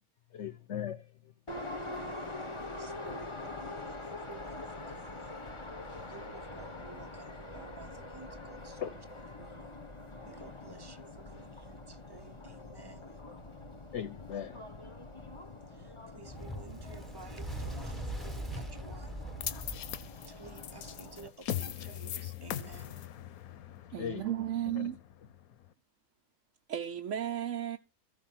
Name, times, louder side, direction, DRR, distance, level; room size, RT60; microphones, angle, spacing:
voice 1, 0.3-1.3 8.8-8.9 13.9-14.7 24.0-24.3 24.7-24.9, left 9 dB, 60° left, 1.0 m, -38 dB
Subway metro underground, 1.5-21.3, left 2 dB, 25° left, 1.0 m, -45 dB
voice 2, 1.8-5.4 6.1-9.8 10.3-13.2 15.7-19.1 20.3-23.1, right 4 dB, 20° right, 1.0 m, -53 dB
Fire, 16.2-20.8, right 1 dB, ahead, 1.2 m, -41 dB
sound 1, 19.4-25.7, left 10 dB, 80° left, 1.2 m, -40 dB
voice 3, 23.9-25.0 26.7-27.8, right 11 dB, 65° right, 1.1 m, -34 dB
14.5 x 5.3 x 7.3 m
omnidirectional pair, 1.5 m